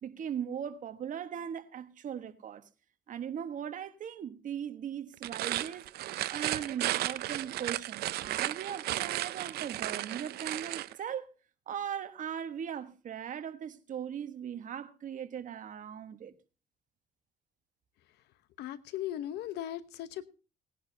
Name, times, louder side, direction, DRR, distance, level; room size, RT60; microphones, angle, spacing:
voice 1, 0.0-2.6 3.1-5.9 6.3-11.3 11.7-16.3, right 8 dB, 50° right, 1.3 m, -39 dB
sound 1, 5.1-10.9, right 15 dB, 70° right, 0.6 m, -34 dB
voice 2, 18.6-20.3, left 12 dB, 80° left, 1.0 m, -38 dB
18.5 x 11.0 x 2.8 m
cardioid pair, 110°, 17 cm